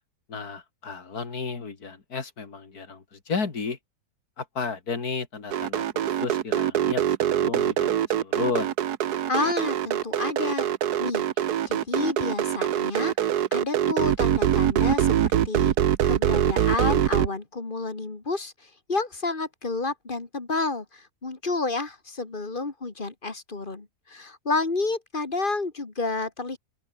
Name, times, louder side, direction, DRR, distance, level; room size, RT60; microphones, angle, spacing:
voice 1, 0.3-3.8 4.4-7.0 7.3-8.7, left 5 dB, 60° left, 3.1 m, -33 dB
sound 1, 5.5-17.3, right 10 dB, 65° right, 1.4 m, -23 dB
voice 2, 9.3-10.7 11.0-11.2 11.7-15.7 16.1-26.6, left 3 dB, 30° left, 2.1 m, -30 dB
open air
omnidirectional pair, 1.9 m